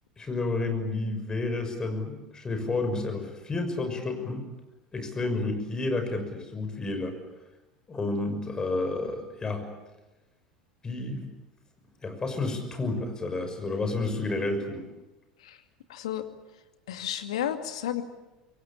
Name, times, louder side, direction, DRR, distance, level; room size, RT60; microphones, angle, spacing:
voice 1, 0.2-4.5 4.9-7.2 7.9-9.7 10.8-11.3 12.0-14.9, left 2 dB, 20° left, 6 dB, 6.3 m, -30 dB
voice 2, 15.9-16.2 16.9-18.0, left 11 dB, 65° left, 8 dB, 2.2 m, -32 dB
26.0 x 23.0 x 8.7 m, 1.1 s
figure-of-eight pair, 75°, 4 cm